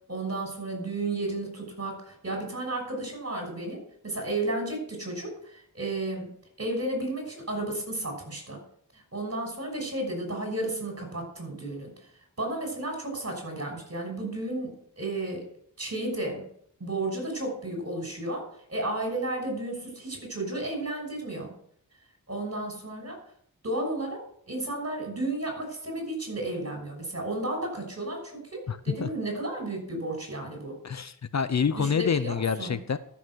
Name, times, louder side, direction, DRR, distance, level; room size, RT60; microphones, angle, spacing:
voice 1, 0.1-6.3 6.6-8.6 8.9-11.9 12.4-15.4 15.8-16.4 16.8-21.5 22.3-23.2 23.6-30.7 31.7-32.7, right 2 dB, 45° right, 2 dB, 6.2 m, -33 dB
voice 2, 28.7-29.1 30.8-33.0, left 6 dB, 50° left, 14 dB, 0.7 m, -27 dB
13.5 x 7.2 x 6.2 m, 0.65 s
wide cardioid pair, 90°, 35 cm